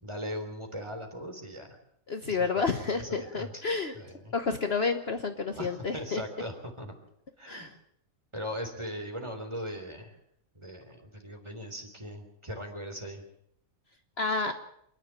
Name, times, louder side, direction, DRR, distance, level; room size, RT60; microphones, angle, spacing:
voice 1, 0.0-1.8 2.2-3.5 3.9-4.3 5.6-6.9 7.4-7.7 8.3-10.1 10.5-13.2, equal, 20° right, 4 dB, 3.5 m, -39 dB
voice 2, 2.1-3.9 4.3-6.2 7.5-7.7 14.2-14.5, left 4 dB, 45° left, 7 dB, 1.3 m, -30 dB
27.5 x 11.0 x 8.9 m, 0.74 s
omnidirectional pair, 1.5 m